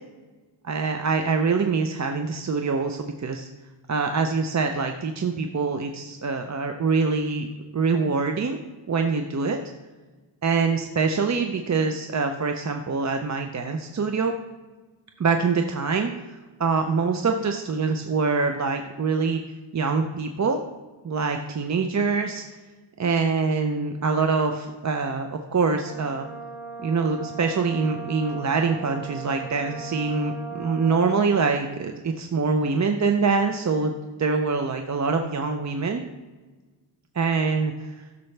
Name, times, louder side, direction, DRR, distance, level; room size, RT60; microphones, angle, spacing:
voice 1, 0.6-3.5 3.9-8.6 8.9-9.6 10.4-14.3 15.2-19.4 19.7-20.6 21.0-22.4 23.0-26.3 26.8-33.9 34.2-36.0 37.2-38.0, right 4 dB, 40° right, 5 dB, 0.5 m, -24 dB
Brass instrument, 25.8-31.6, right 5 dB, ahead, 3.3 m, -38 dB
14.5 x 6.8 x 3.3 m, 1.3 s
wide cardioid pair, 155°, 47 cm